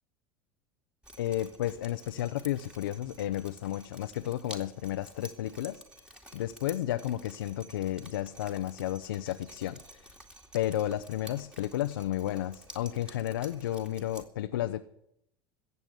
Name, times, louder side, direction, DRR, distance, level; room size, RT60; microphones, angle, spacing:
Drip, 1.0-14.2, right 1 dB, 5° right, 2.4 m, -51 dB
voice 1, 1.2-5.8 6.3-10.1 10.5-14.8, left 13 dB, 85° left, 8 dB, 0.6 m, -32 dB
15.0 x 8.3 x 9.5 m, 0.78 s
hypercardioid pair, 85°, 11 cm